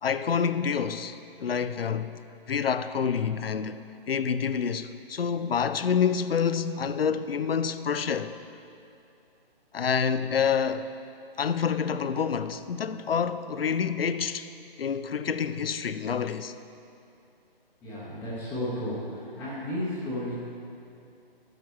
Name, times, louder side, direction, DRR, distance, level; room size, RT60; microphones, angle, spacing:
voice 1, 0.0-2.2 2.5-3.8 4.1-8.3 9.7-10.9 11.4-14.5 14.8-16.5, left 7 dB, 70° left, 0.5 m, -27 dB
voice 2, 17.8-20.3, left 1 dB, 5° left, 0.9 m, -33 dB
13.0 x 5.8 x 4.7 m
figure-of-eight pair, 150°, 30 cm